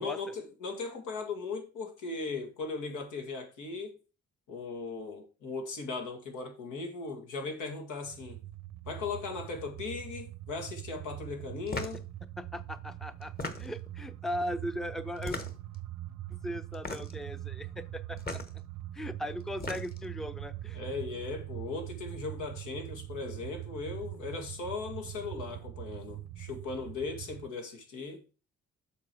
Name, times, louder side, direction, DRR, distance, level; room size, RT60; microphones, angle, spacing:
voice 1, 0.0-4.0 4.5-8.4 8.9-12.0 20.7-28.2, left 4 dB, 85° left, 2.1 m, -38 dB
sound 1, 8.0-27.5, right 14 dB, 70° right, 0.7 m, -43 dB
sound 2, 11.7-12.0 13.2-13.9 15.2-15.8 16.7-17.2 18.2-18.5 19.4-20.1, left 3 dB, 30° left, 1.2 m, -38 dB
voice 2, 12.4-15.4 16.3-18.4 18.9-20.8, equal, ahead, 0.5 m, -38 dB
7.4 x 4.0 x 6.2 m
cardioid pair, 90°, 30 cm